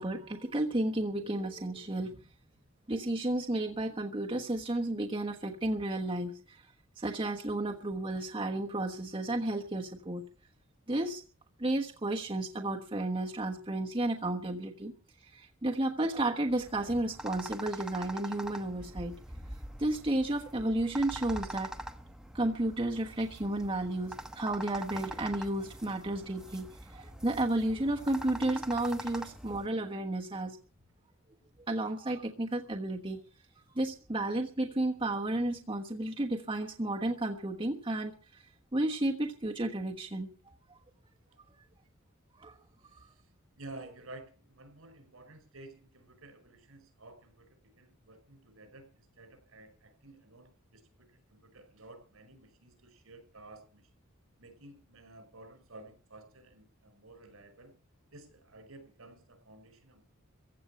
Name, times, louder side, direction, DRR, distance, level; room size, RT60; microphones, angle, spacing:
voice 1, 0.0-2.2 2.9-6.7 7.0-10.2 10.9-11.2 11.6-14.9 15.2-19.2 19.8-21.7 22.3-30.6 31.7-33.2 33.7-38.5 38.7-40.8 42.3-42.6, right 1 dB, 25° right, 1 dB, 1.2 m, -32 dB
sound 1, 16.5-29.7, right 1 dB, 5° right, 1.0 m, -44 dB
voice 2, 42.8-50.8 51.1-53.9 54.4-57.7 58.1-60.0, right 2 dB, 75° right, 9 dB, 5.2 m, -53 dB
16.0 x 7.2 x 9.8 m, 0.37 s
head